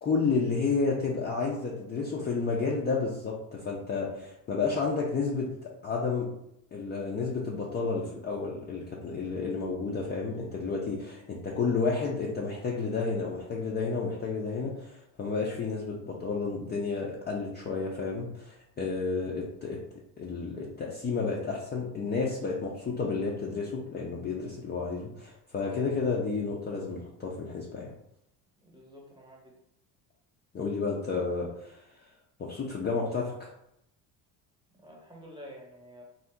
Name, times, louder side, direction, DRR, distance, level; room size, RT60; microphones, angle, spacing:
voice 1, 0.0-5.5 5.8-6.3 6.7-19.8 20.2-27.9 30.5-31.8 32.4-33.5, left 4 dB, 25° left, -3 dB, 0.5 m, -31 dB
voice 2, 28.6-29.5 34.8-36.0, equal, 10° right, -2 dB, 1.0 m, -49 dB
2.7 x 2.0 x 3.5 m, 0.78 s
supercardioid pair, 95°, 42 cm